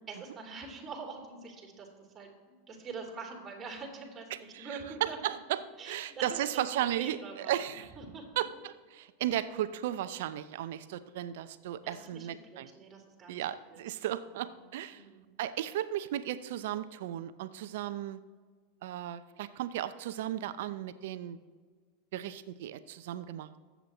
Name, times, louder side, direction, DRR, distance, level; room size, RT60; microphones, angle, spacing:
voice 1, 0.1-5.2 5.8-8.5 11.8-13.8 14.3-14.6 14.9-15.3, right 4 dB, 25° right, 0 dB, 3.4 m, -45 dB
voice 2, 4.5-7.9 8.4-12.7 13.3-15.0 15.4-18.2 18.8-21.4 22.1-23.6, right 12 dB, 65° right, 13 dB, 0.6 m, -35 dB
21.0 x 8.1 x 3.1 m, 1.5 s
hypercardioid pair, 85°, 0 cm